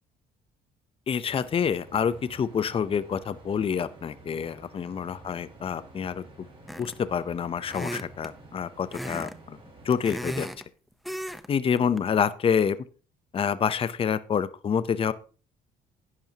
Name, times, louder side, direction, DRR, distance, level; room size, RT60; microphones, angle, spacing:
voice 1, 1.1-6.2 6.8-9.6 9.8-10.5 11.5-12.8 13.3-15.1, left 7 dB, 35° left, 15 dB, 0.7 m, -27 dB
sound 1, 1.3-10.4, right 1 dB, 30° right, 5.1 m, -50 dB
sound 2, 6.7-7.1 7.7-8.3 8.9-9.4 9.7-10.6 11.1-11.5 11.8-12.0, equal, ahead, 0.8 m, -35 dB
11.0 x 10.5 x 2.9 m, 0.38 s
cardioid pair, 110°, 17 cm